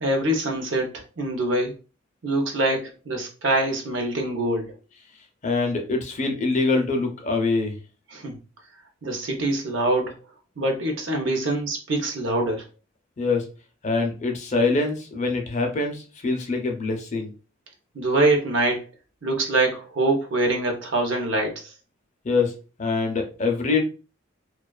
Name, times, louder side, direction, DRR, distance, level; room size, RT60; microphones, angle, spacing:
voice 1, 0.0-1.7 2.2-4.7 8.1-8.3 9.0-10.2 10.6-12.7 17.9-18.9 19.2-21.7, right 2 dB, 65° right, 2 dB, 0.6 m, -24 dB
voice 2, 5.4-7.8 13.2-13.5 13.8-17.3 22.2-23.8, left 3 dB, 35° left, 3 dB, 0.4 m, -24 dB
2.4 x 2.3 x 2.3 m, 0.33 s
head